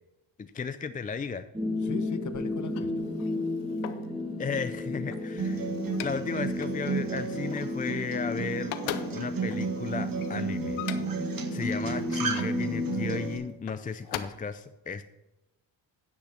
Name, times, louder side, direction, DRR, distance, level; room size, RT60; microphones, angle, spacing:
voice 1, 0.4-1.5 4.4-5.7 6.0-8.8 9.1-10.8 11.5-15.0, left 5 dB, 20° left, 0.4 m, -34 dB
sound 1, 1.5-13.3, left 2 dB, 10° right, 1.9 m, -33 dB
voice 2, 1.8-2.9 11.7-12.3, left 6 dB, 40° left, 1.0 m, -40 dB
sound 2, 2.6-4.2 4.8-6.3 6.6-6.8 7.1-8.3 8.5-11.3 12.0-12.7 13.5-14.2, left 12 dB, 90° left, 0.8 m, -40 dB
Acoustic guitar, 5.4-13.4, right 5 dB, 45° right, 1.7 m, -34 dB
10.0 x 6.2 x 5.8 m
supercardioid pair, 60°, 47 cm